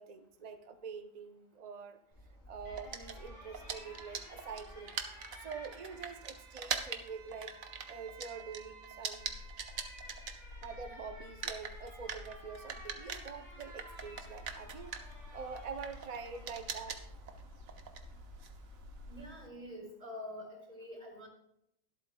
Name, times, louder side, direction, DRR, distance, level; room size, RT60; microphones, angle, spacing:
voice 1, 0.0-2.0 2.5-5.0 5.4-7.6 7.9-9.3 10.6-17.1 17.6-17.7, right 5 dB, 55° right, 9 dB, 0.4 m, -46 dB
Alarm, 2.1-19.3, right 1 dB, 40° left, 5.2 m, -54 dB
sound 1, 2.8-10.9 11.2-19.5, right 6 dB, 85° right, 1.4 m, -43 dB
sound 2, 9.2-19.2, left 3 dB, 65° left, 2.2 m, -53 dB
voice 2, 19.1-21.3, left 1 dB, 30° right, 1 dB, 3.9 m, -46 dB
23.0 x 8.4 x 2.2 m, 0.78 s
omnidirectional pair, 1.4 m